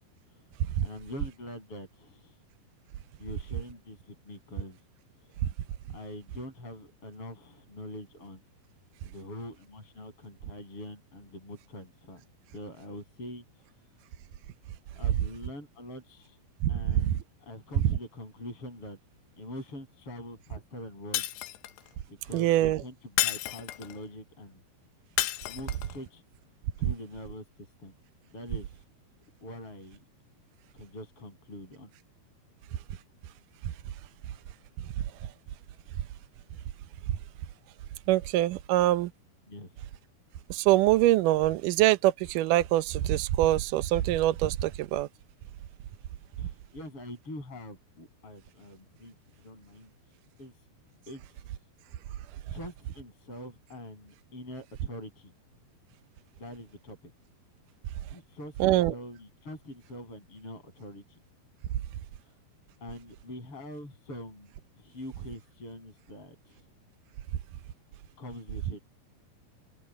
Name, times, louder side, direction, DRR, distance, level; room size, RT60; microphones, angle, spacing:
voice 1, 0.8-2.4 3.2-4.8 5.3-5.4 5.9-8.4 9.0-12.2 12.5-13.7 14.9-16.4 16.7-19.0 19.4-21.2 22.1-22.9 23.2-24.6 25.5-26.2 26.8-27.4 27.8-27.9 28.3-28.8 29.4-30.0 30.7-31.9 39.5-39.7 46.4-49.1 49.4-49.9 50.4-50.5 51.1-51.2 52.5-55.3 56.4-57.1 58.1-61.2 62.2-62.3 62.8-64.5 64.8-66.6 68.2-68.8, left 1 dB, 30° left, 8.0 m, -44 dB
voice 2, 16.6-17.2 22.3-22.8 26.8-26.9 38.1-39.1 40.5-45.1 58.6-58.9, right 14 dB, 75° right, 2.0 m, -24 dB
Shatter, 21.1-21.9 23.2-24.0 25.2-26.0, left 14 dB, 80° left, 3.0 m, -31 dB
open air
omnidirectional pair, 4.7 m